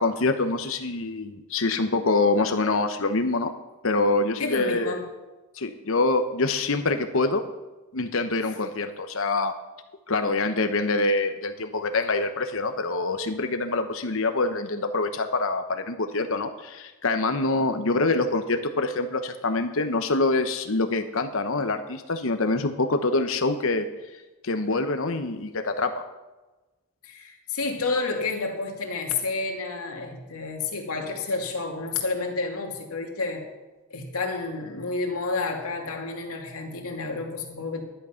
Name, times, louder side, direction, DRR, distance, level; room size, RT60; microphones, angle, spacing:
voice 1, 0.0-3.5 3.8-5.0 5.6-7.4 7.9-9.5 10.1-23.9 24.4-26.1, left 3 dB, 65° left, 7 dB, 1.0 m, -25 dB
voice 2, 4.4-5.1 27.0-33.5 33.9-37.8, left 3 dB, 90° left, 1 dB, 2.3 m, -30 dB
11.5 x 11.0 x 5.7 m, 1.1 s
head